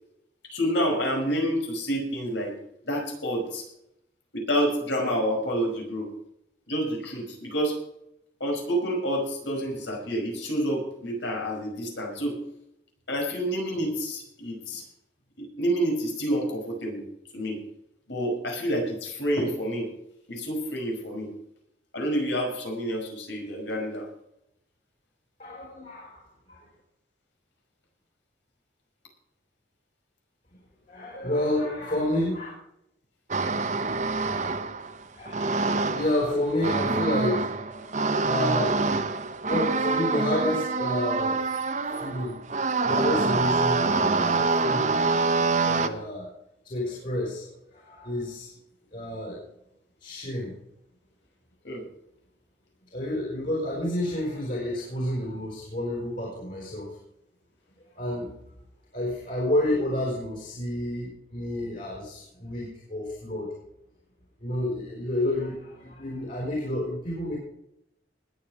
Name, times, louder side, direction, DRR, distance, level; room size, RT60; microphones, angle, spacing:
voice 1, 0.5-2.5 2.8-3.6 4.3-6.1 6.7-7.8 8.4-12.4 13.1-14.8 15.4-17.0 17.3-17.6 18.1-19.9 20.3-21.3 21.9-24.1 38.9-39.0 45.8-46.0 51.6-51.8, equal, 80° left, 1 dB, 5.5 m, -28 dB
voice 2, 25.4-26.6 30.9-32.5 35.1-38.8 39.4-41.4 41.9-42.4 42.8-43.8 44.2-45.0 45.6-46.3 46.6-48.5 48.9-49.4 50.0-50.5 52.9-56.9 57.9-58.3 58.9-63.5 64.4-67.4, left 1 dB, 45° left, -3 dB, 5.2 m, -30 dB
sound 1, 33.3-45.9, right 3 dB, 40° right, 0.9 m, -26 dB
20.5 x 7.8 x 5.0 m, 0.78 s
head